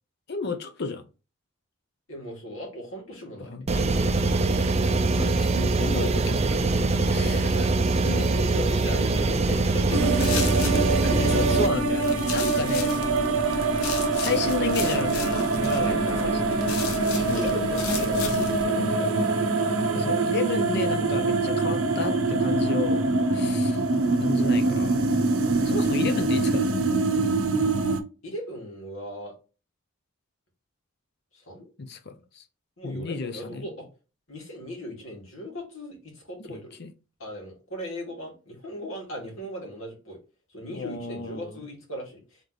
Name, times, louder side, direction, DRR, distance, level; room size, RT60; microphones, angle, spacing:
voice 1, 0.3-1.0 3.4-4.1 5.2-6.7 7.0-7.5 8.0-8.3 11.2-13.1 14.2-17.5 19.9-23.8 24.2-25.0 25.6-26.8 31.8-32.4 32.8-33.7 36.5-36.9 40.7-41.6, left 4 dB, 50° left, 0.6 m, -33 dB
voice 2, 2.1-3.5 7.2-7.7 8.1-11.6 15.7-16.3 17.1-19.3 28.2-29.3 31.3-31.7 32.8-33.9 34.3-36.7 37.2-40.2 40.5-42.4, equal, 70° left, 2.1 m, -38 dB
sound 1, 3.7-11.7, right 3 dB, 30° right, 0.3 m, -23 dB
sound 2, 9.9-28.0, right 3 dB, 75° right, 0.6 m, -24 dB
sound 3, 10.0-18.6, left 5 dB, 85° left, 0.9 m, -36 dB
3.5 x 3.2 x 3.9 m
head